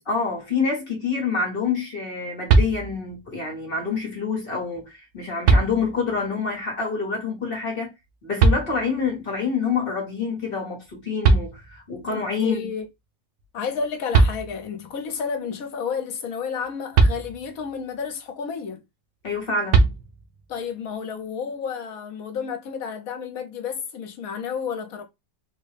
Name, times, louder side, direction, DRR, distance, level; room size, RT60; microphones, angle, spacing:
voice 1, 0.1-7.9 8.2-12.7 19.2-19.9, left 5 dB, 40° left, 1.1 m, -27 dB
sound 1, 2.5-3.2 4.7-4.8 5.4-6.2 8.4-9.1 10.9-11.0 11.2-12.1 13.8-13.9 14.1-14.9 16.9-17.8 19.7-20.5, right 3 dB, 85° right, 1.2 m, -20 dB
voice 2, 12.1-12.9 13.5-18.8 20.5-25.0, left 6 dB, 65° left, 1.2 m, -31 dB
3.9 x 2.2 x 3.3 m
omnidirectional pair, 1.7 m